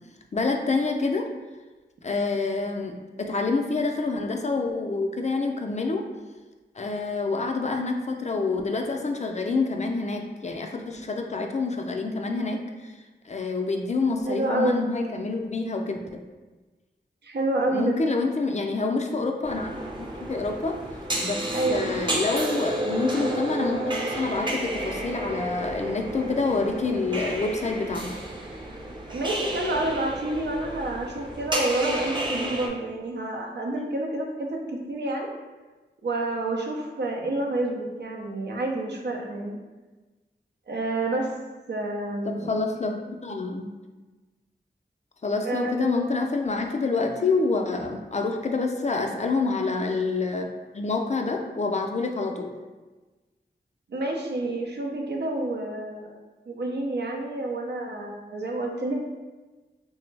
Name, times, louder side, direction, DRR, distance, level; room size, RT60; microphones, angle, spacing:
voice 1, 0.3-1.3 2.0-6.0 6.8-13.0 13.2-16.0 17.7-19.7 20.0-20.8 21.2-28.2 42.3-43.7 45.2-52.5, left 3 dB, 40° left, 3 dB, 0.4 m, -27 dB
voice 2, 14.3-14.8 17.2-18.0 21.5-21.9 29.1-35.3 36.0-39.6 40.7-41.3 41.7-42.5 45.4-46.1 53.9-56.1 56.5-59.0, right 2 dB, 70° right, 0 dB, 0.5 m, -28 dB
sound 1, 19.4-32.7, right 1 dB, 25° right, 0.6 m, -31 dB
3.1 x 2.0 x 3.2 m, 1.2 s
cardioid pair, 40°, 18 cm